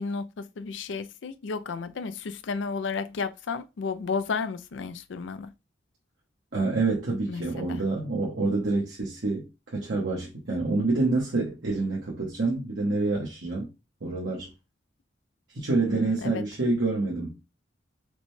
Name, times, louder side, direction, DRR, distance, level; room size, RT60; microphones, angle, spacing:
voice 1, 0.0-5.5 7.3-7.8 15.9-16.4, left 4 dB, 75° left, 0.4 m, -33 dB
voice 2, 6.5-13.7 14.0-14.5 15.5-17.4, right 3 dB, 70° right, 1.1 m, -27 dB
5.0 x 2.2 x 3.2 m
head